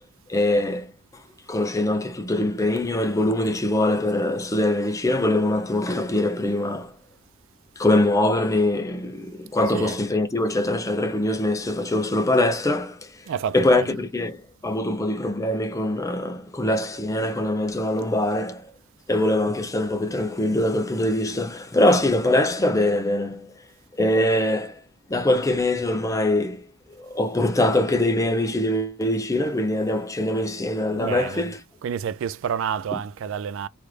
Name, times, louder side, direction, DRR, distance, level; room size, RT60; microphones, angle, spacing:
voice 1, 0.3-0.9 1.5-6.9 7.8-13.1 13.5-18.7 19.1-23.5 24.0-24.8 25.1-26.7 27.0-31.6, left 1 dB, 15° left, 0.5 m, -23 dB
voice 2, 9.5-10.0 13.3-14.0 30.9-31.5 31.8-33.7, right 8 dB, 60° right, 0.3 m, -30 dB
3.2 x 2.5 x 3.1 m
head